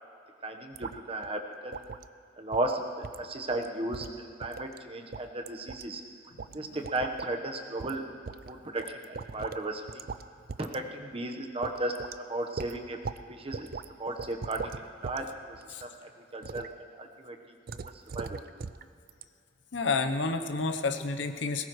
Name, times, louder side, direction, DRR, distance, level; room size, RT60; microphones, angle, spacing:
voice 1, 0.4-1.8 2.4-6.0 6.5-8.0 8.5-10.1 10.6-11.9 12.3-13.0 13.3-13.7 14.0-14.7 15.0-15.3 15.6-15.9 16.3-16.7 17.0-17.4 18.1-18.4, right 2 dB, 30° right, 3 dB, 1.2 m, -35 dB
sound 1, 0.7-1.0 1.2-1.3 1.7-2.1 2.5-2.7 3.0-3.2 3.5-3.7 3.9-4.8 5.1-5.8 6.4-6.6 6.8-7.3 7.8-8.0 8.3-9.6 9.9-10.2 10.5-10.8 11.1-11.2 11.6-12.2 12.6-13.2 13.5-13.8 14.2-15.2 15.5-15.8 16.4-16.7 17.7-18.8 19.1-19.2, right 5 dB, 55° right, 0.4 m, -39 dB
voice 2, 19.7-21.7, left 3 dB, 85° left, 8 dB, 0.9 m, -30 dB
21.5 x 18.5 x 3.2 m, 2.4 s
head